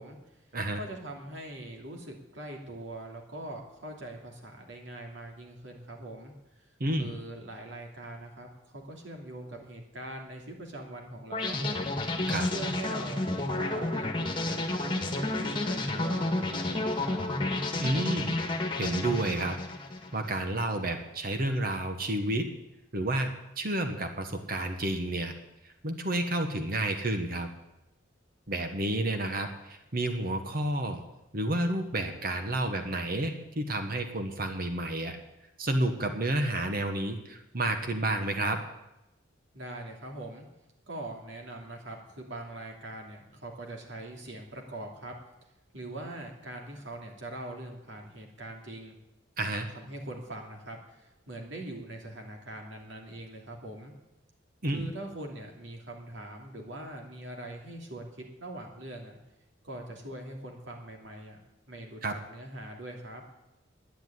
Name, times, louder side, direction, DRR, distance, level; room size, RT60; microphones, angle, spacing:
voice 1, 0.0-0.4 0.7-11.9 12.5-17.2 39.5-40.5 40.9-45.1 45.7-48.9 49.7-53.9 54.7-59.2 59.6-61.4 61.7-62.0 62.3-63.2, right 1 dB, 70° right, 1 dB, 3.0 m, -42 dB
sound 1, 11.3-20.4, left 2 dB, 25° left, 1.7 m, -31 dB
voice 2, 17.8-18.4 18.8-19.6 20.1-22.5 22.9-25.3 25.6-27.5 28.5-31.0 31.3-35.2 35.6-38.6 49.4-49.7 54.6-54.8 62.0-62.1, right 1 dB, 50° right, 6 dB, 1.2 m, -30 dB
10.5 x 9.9 x 9.6 m, 0.93 s
head